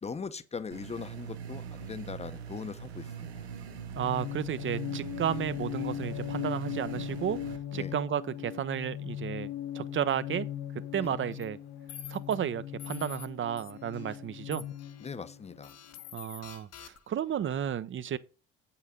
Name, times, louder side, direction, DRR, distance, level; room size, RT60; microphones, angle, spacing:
voice 1, 0.0-3.5 7.7-7.9 11.0-11.2 15.0-15.7, left 5 dB, 20° left, 0.8 m, -40 dB
sound 1, 0.7-7.6, right 7 dB, 85° right, 1.1 m, -42 dB
voice 2, 3.9-7.4 7.7-9.5 9.7-10.5 10.9-11.6 12.1-14.6 16.1-18.2, right 9 dB, 40° right, 0.7 m, -33 dB
sound 2, 4.0-16.0, left 11 dB, 75° left, 0.9 m, -39 dB
sound 3, 11.3-11.4 11.9-12.3 12.8-13.3 13.6-14.2 14.5-15.1 15.6-17.2, left 9 dB, 50° left, 1.2 m, -48 dB
8.2 x 5.7 x 5.2 m
hypercardioid pair, 55°, 32 cm